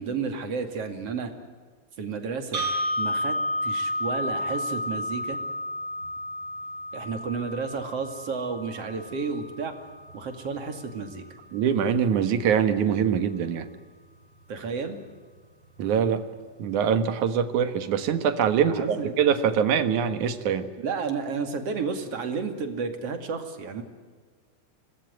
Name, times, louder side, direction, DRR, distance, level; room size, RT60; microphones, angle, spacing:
voice 1, 0.0-1.3 2.0-2.7 3.0-3.4 3.6-5.4 6.9-9.8 10.1-11.2 14.5-15.0 18.7-19.2 20.8-23.8, right 5 dB, 50° right, 7 dB, 3.3 m, -32 dB
sound 1, 2.5-10.6, left 1 dB, 35° right, 6.0 m, -32 dB
voice 2, 11.5-13.7 15.8-16.2 16.6-20.7, right 7 dB, 75° right, 10 dB, 3.0 m, -23 dB
25.5 x 19.5 x 9.5 m, 1.5 s
omnidirectional pair, 3.5 m